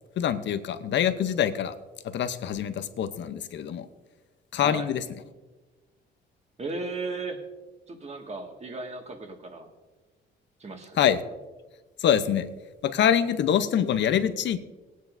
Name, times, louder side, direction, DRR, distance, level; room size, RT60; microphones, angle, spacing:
voice 1, 0.2-1.8 2.0-3.9 4.5-5.0 11.0-11.2 12.0-12.5 12.8-14.6, left 9 dB, 65° left, 11 dB, 0.8 m, -25 dB
voice 2, 4.6-4.9 6.6-7.4 7.9-9.7 10.6-11.0, right 3 dB, 35° right, 3 dB, 1.9 m, -36 dB
18.5 x 9.3 x 2.7 m, 1.2 s
cardioid pair, 90°, 20 cm